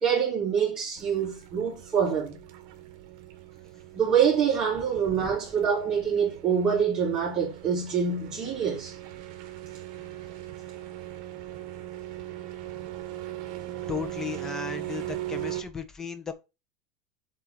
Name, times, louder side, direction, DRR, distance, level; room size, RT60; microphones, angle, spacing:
voice 1, 0.0-2.4 3.9-9.0, right 7 dB, 25° right, 3.1 m, -25 dB
sound 1, 1.0-15.6, right 14 dB, 50° right, 1.8 m, -40 dB
voice 2, 13.9-16.3, left 6 dB, 15° left, 0.9 m, -35 dB
8.0 x 3.9 x 4.4 m
supercardioid pair, 150°, 3 cm